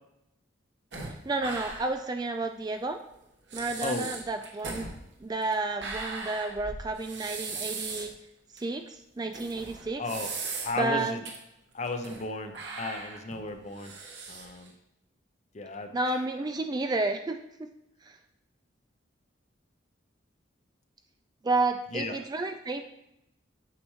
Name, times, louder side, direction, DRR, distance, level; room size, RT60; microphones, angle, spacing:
sound 1, 0.9-2.1 2.4-2.5 3.1-3.2 3.5-8.2 8.6-8.7 9.3-10.9 11.3-11.4 11.8-12.3 12.5-14.7, right 4 dB, 65° right, 1.4 m, -38 dB
voice 1, 1.0-3.0 3.5-4.9 5.2-8.1 8.5-10.0 10.8-11.2 15.9-17.7 18.0-18.2 21.4-22.8, right 2 dB, 20° right, 6 dB, 0.3 m, -31 dB
voice 2, 10.0-10.3 10.6-11.2 11.7-13.9 14.3-14.7 15.5-15.9 21.9-22.2, left 2 dB, 35° left, 6 dB, 0.6 m, -34 dB
8.5 x 6.6 x 3.1 m, 0.85 s
head